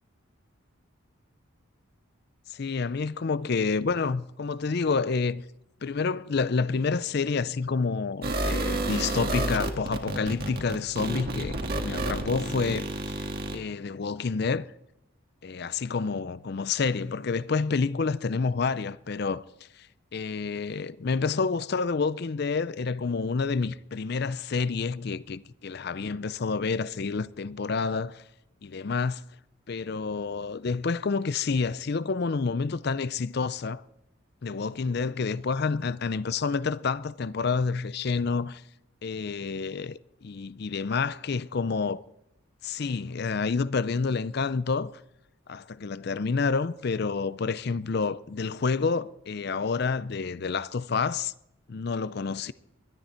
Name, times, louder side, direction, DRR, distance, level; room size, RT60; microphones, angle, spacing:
voice 1, 2.5-5.4 5.8-12.9 13.2-14.7 15.4-19.4 19.8-19.9 20.1-28.2 28.6-29.2 29.7-33.8 34.4-38.6 39.0-42.0 42.6-44.9 45.5-51.3 51.7-52.5, left 4 dB, 50° left, 0.5 m, -29 dB
sound 1, 8.2-13.6, right 2 dB, 45° right, 1.7 m, -30 dB
20.5 x 12.5 x 4.4 m
head